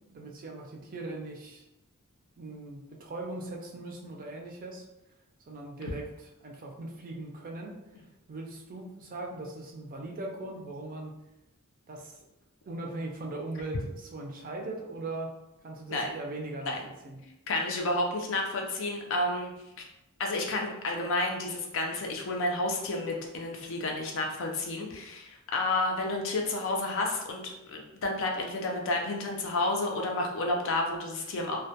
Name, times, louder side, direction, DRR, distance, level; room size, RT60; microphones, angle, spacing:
voice 1, 0.1-1.6 2.4-4.9 5.5-7.7 8.3-11.1 11.9-12.2 12.7-15.3 15.6-16.8 17.0-17.2, right 2 dB, 40° right, 0 dB, 0.4 m, -39 dB
voice 2, 17.5-19.5 19.8-19.9 20.2-31.6, left 2 dB, 60° left, 1 dB, 0.4 m, -30 dB
2.1 x 2.1 x 2.7 m, 0.93 s
head